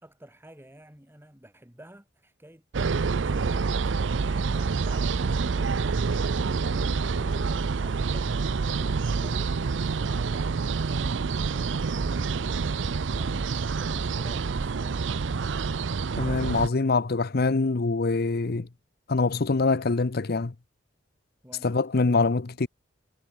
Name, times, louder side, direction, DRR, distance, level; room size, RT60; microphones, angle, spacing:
voice 1, 0.0-3.9 4.2-6.0 6.5-9.6 10.0-12.8 13.1-15.0 21.4-22.2, equal, 10° right, 4.2 m, -49 dB
sound 1, 2.7-16.7, right 4 dB, 75° right, 0.6 m, -27 dB
voice 2, 16.2-18.7 19.1-20.5 21.6-22.7, left 3 dB, 55° left, 0.7 m, -24 dB
head